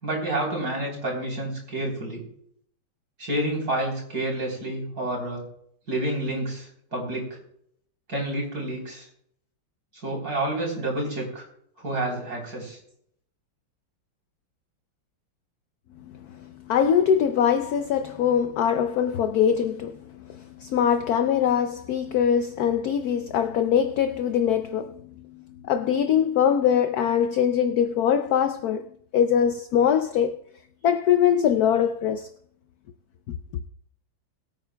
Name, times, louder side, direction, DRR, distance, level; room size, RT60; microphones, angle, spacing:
voice 1, 0.0-2.2 3.2-5.4 5.9-7.3 8.1-9.0 10.0-11.4 11.8-12.8, right 1 dB, 50° right, 4.1 m, -29 dB
voice 2, 16.1-28.9 29.1-30.4 30.8-32.3, left 8 dB, 75° left, 0.8 m, -23 dB
22.5 x 8.9 x 2.2 m
omnidirectional pair, 2.2 m